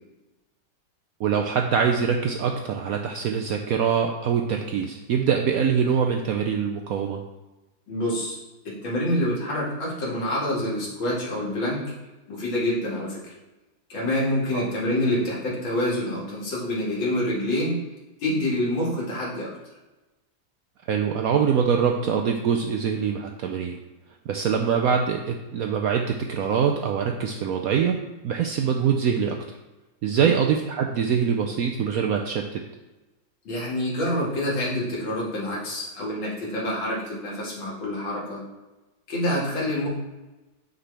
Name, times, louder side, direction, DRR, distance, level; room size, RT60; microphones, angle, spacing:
voice 1, 1.2-7.2 14.5-14.7 20.9-23.8 24.3-28.0 28.2-29.4 30.0-32.6, right 7 dB, 85° right, 3 dB, 0.7 m, -24 dB
voice 2, 7.9-8.4 8.6-11.8 12.3-13.3 13.9-17.8 18.2-19.5 30.1-30.3 33.4-38.4 39.1-39.9, left 1 dB, 80° left, -5 dB, 2.7 m, -27 dB
7.7 x 6.0 x 3.3 m, 1.1 s
omnidirectional pair, 2.1 m